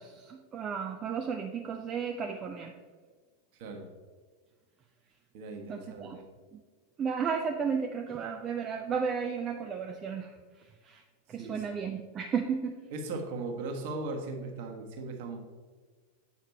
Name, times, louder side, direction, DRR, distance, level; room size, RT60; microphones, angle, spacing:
voice 1, 0.0-2.7 5.7-6.2 6.5-6.6 7.0-10.4 10.8-11.0 11.3-12.8, right 6 dB, 25° right, 4 dB, 0.5 m, -33 dB
voice 2, 3.6-3.9 5.3-6.2 11.4-11.6 12.9-15.4, right 3 dB, 50° right, 3 dB, 1.4 m, -38 dB
8.6 x 5.8 x 4.4 m, 1.4 s
figure-of-eight pair, 90°, 0 cm